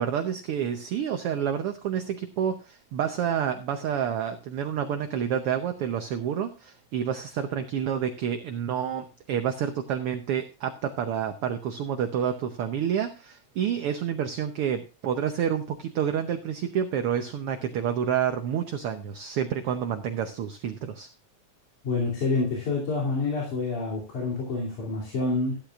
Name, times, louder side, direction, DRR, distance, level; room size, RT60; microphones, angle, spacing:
voice 1, 0.0-21.1, right 8 dB, 65° right, 6 dB, 1.5 m, -29 dB
voice 2, 21.8-25.6, left 3 dB, 90° left, -4 dB, 4.3 m, -27 dB
13.5 x 12.0 x 2.4 m, 0.32 s
omnidirectional pair, 3.4 m